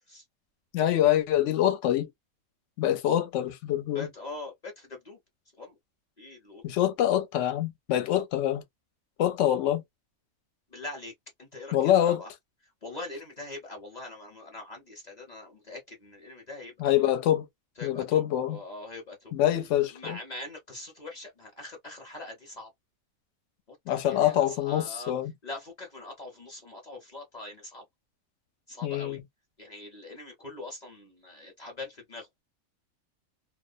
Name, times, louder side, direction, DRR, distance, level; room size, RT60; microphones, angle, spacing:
voice 1, 0.7-2.1 2.8-4.1 6.6-8.6 9.2-9.8 11.7-12.2 16.8-17.5 17.8-18.6 19.3-20.2 23.9-25.3 28.8-29.2, left 12 dB, 65° left, 0.9 m, -25 dB
voice 2, 3.9-5.2 5.6-5.8 6.2-6.6 8.1-8.2 10.7-11.1 11.4-12.3 12.8-16.7 17.8-18.0 18.4-19.3 19.9-22.7 23.9-25.1 25.4-27.8 28.7-29.2 29.6-32.3, left 2 dB, 35° left, 0.8 m, -42 dB
2.4 x 2.0 x 2.4 m
omnidirectional pair, 1.5 m